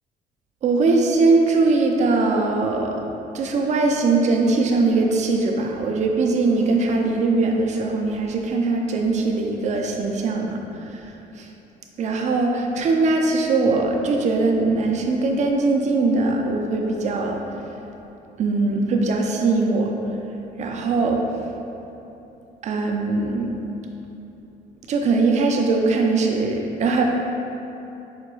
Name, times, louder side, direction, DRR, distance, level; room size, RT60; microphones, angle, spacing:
voice 1, 0.6-2.9 3.3-11.0 11.4-11.5 12.0-17.4 18.4-19.9 20.6-21.2 22.6-23.5 24.9-27.0, right 3 dB, 45° right, 2 dB, 0.4 m, -21 dB
4.9 x 2.2 x 3.1 m, 2.9 s
cardioid pair, 110°, 17 cm